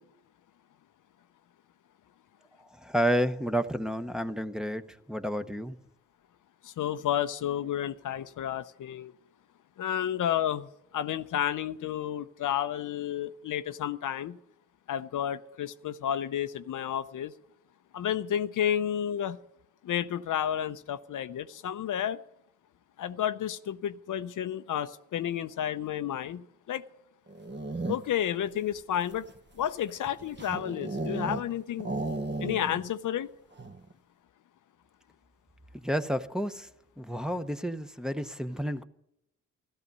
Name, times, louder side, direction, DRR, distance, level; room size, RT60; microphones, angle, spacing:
voice 1, 2.7-4.8 5.1-5.8 35.7-36.7 37.0-38.8, equal, ahead, 0.9 m, -30 dB
voice 2, 6.8-9.1 9.8-10.7 10.9-14.4 14.9-17.3 17.9-19.4 19.8-22.2 23.0-26.8 27.9-29.2 29.6-31.9 32.4-33.3, left 10 dB, 70° left, 0.6 m, -31 dB
sound 1, 27.3-28.3 28.9-31.5 31.8-32.9 33.1-33.2 33.5-33.9, right 2 dB, 35° right, 1.2 m, -35 dB
14.0 x 12.5 x 5.4 m
supercardioid pair, 50°, 32 cm